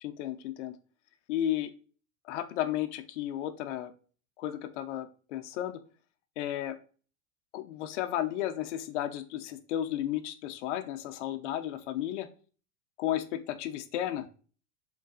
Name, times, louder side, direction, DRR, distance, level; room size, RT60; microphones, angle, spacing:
voice 1, 0.0-0.7 1.3-1.7 2.3-3.9 4.4-5.8 6.4-6.8 7.5-12.3 13.0-14.3, left 12 dB, 60° left, 7 dB, 1.1 m, -33 dB
7.2 x 4.0 x 4.0 m, 0.39 s
supercardioid pair, 175°, 41 cm